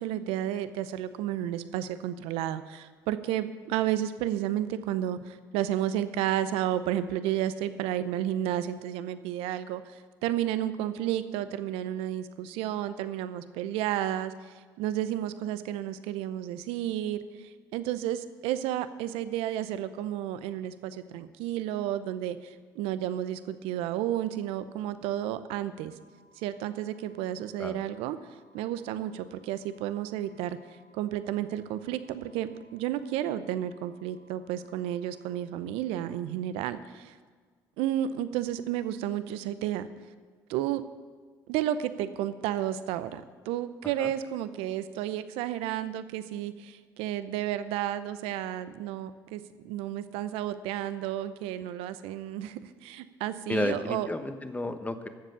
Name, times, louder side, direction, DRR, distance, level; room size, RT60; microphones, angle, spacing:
voice 1, 0.0-25.9 26.4-28.2 28.5-30.6 30.9-37.1 37.8-39.9 40.5-40.8 41.5-54.1, right 12 dB, 70° right, 13 dB, 0.7 m, -32 dB
sound 1, 25.7-35.3, equal, 75° left, 3.9 m, -64 dB
voice 2, 53.5-55.1, left 2 dB, 15° left, 9 dB, 1.1 m, -32 dB
12.5 x 7.5 x 6.8 m, 1.5 s
hypercardioid pair, 60°, 10 cm